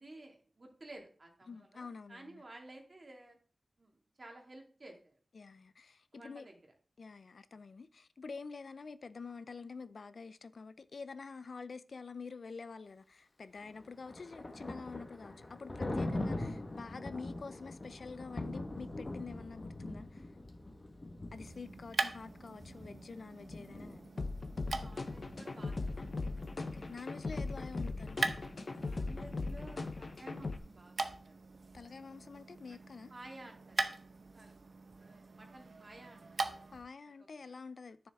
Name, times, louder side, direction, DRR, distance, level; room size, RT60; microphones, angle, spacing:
voice 1, 0.0-3.4 3.8-5.1 6.1-6.5 24.7-27.0 28.8-31.3 32.7-32.8 33.1-33.8 34.3-34.5 35.0-36.5 37.3-37.5, right 2 dB, 45° right, 2.3 m, -54 dB
voice 2, 1.5-2.4 5.3-6.5 7.0-20.3 21.3-24.1 26.7-28.2 31.7-33.1 36.7-38.1, left 4 dB, 75° left, 0.5 m, -47 dB
Thunder, 13.6-25.4, left 2 dB, 35° left, 1.5 m, -43 dB
sound 1, 21.3-36.9, right 3 dB, 65° right, 0.8 m, -43 dB
sound 2, 24.2-30.6, left 3 dB, 55° left, 0.9 m, -39 dB
9.6 x 7.1 x 3.6 m
wide cardioid pair, 75°, 0 cm